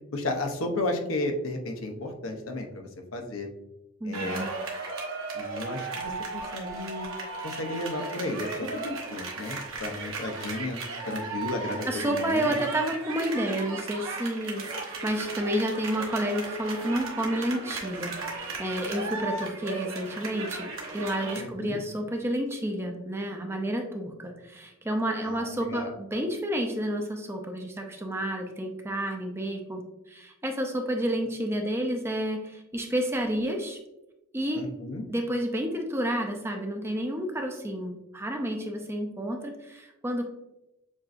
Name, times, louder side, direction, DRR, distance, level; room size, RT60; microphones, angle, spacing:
voice 1, 0.1-3.5 4.0-4.4 5.3-7.1 7.4-10.8 11.1-12.6 21.3-21.8 25.2-25.9 34.5-35.0, left 2 dB, 80° left, 3 dB, 0.7 m, -33 dB
voice 2, 4.0-4.5 11.9-33.8 34.3-34.6 35.1-40.2, right 1 dB, 10° right, 3 dB, 0.5 m, -30 dB
sound 1, 4.1-21.4, right 3 dB, 75° right, 1.0 m, -36 dB
7.3 x 2.6 x 2.5 m, 0.94 s
head